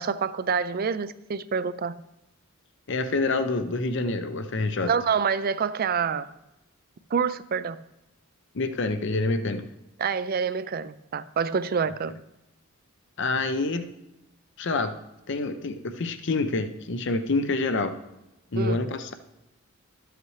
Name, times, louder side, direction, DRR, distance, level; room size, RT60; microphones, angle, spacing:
voice 1, 0.0-1.9 4.9-6.3 7.1-7.8 10.0-12.1 18.6-18.8, right 6 dB, 45° right, 15 dB, 0.4 m, -27 dB
voice 2, 2.9-4.9 8.5-9.6 13.2-13.9 14.6-14.9 15.3-17.9 18.5-19.1, left 3 dB, 55° left, 9 dB, 0.7 m, -27 dB
12.5 x 8.1 x 3.2 m, 0.92 s
head